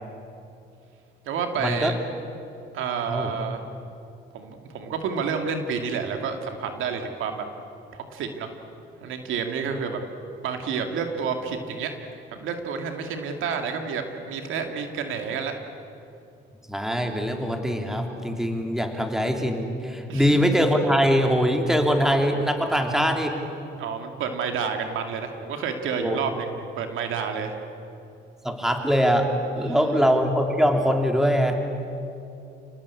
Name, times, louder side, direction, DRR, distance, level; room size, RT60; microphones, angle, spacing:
voice 1, 1.3-2.0 2.7-3.6 4.3-7.5 7.9-8.5 9.0-10.0 10.4-11.9 12.3-15.6 20.1-20.4 23.8-27.5 29.6-30.0, right 6 dB, 85° right, 5 dB, 2.6 m, -29 dB
voice 2, 16.7-23.4 26.0-26.2 28.4-29.3 29.5-31.6, equal, ahead, 3 dB, 3.2 m, -22 dB
29.0 x 19.0 x 8.6 m, 2.6 s
cardioid pair, 90°, 20 cm